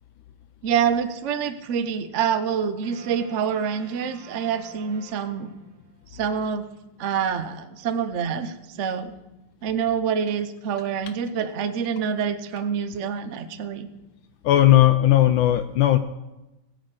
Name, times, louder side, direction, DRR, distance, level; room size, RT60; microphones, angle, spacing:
voice 1, 0.6-5.5 6.1-6.7 7.0-9.1 9.6-13.9, right 7 dB, 60° right, 9 dB, 0.8 m, -26 dB
sound 1, 2.8-6.1, right 6 dB, 75° right, 2.3 m, -48 dB
voice 2, 14.4-16.0, left 13 dB, 75° left, 10 dB, 1.3 m, -17 dB
16.5 x 6.5 x 7.8 m, 0.99 s
omnidirectional pair, 2.3 m